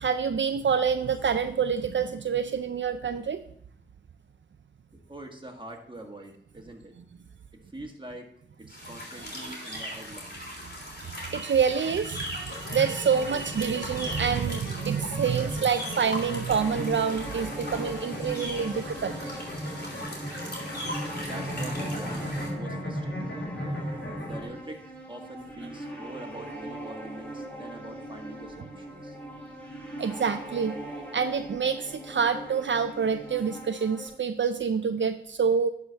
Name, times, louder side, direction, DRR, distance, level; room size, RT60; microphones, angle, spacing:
voice 1, 0.0-3.4 9.2-9.8 11.1-19.3 30.0-30.8 31.1-35.7, right 6 dB, 75° right, 9 dB, 0.4 m, -27 dB
voice 2, 4.9-6.9 7.6-8.3 8.6-10.6 21.3-23.4 24.2-29.2, right 1 dB, 25° right, 2 dB, 1.6 m, -44 dB
sound 1, 8.7-22.5, equal, 55° left, 3.2 m, -39 dB
sound 2, 12.4-24.4, equal, 80° left, 2.7 m, -37 dB
sound 3, 16.4-34.1, right 1 dB, 5° left, 2.9 m, -41 dB
11.0 x 4.9 x 4.0 m, 0.66 s
wide cardioid pair, 45°, 20 cm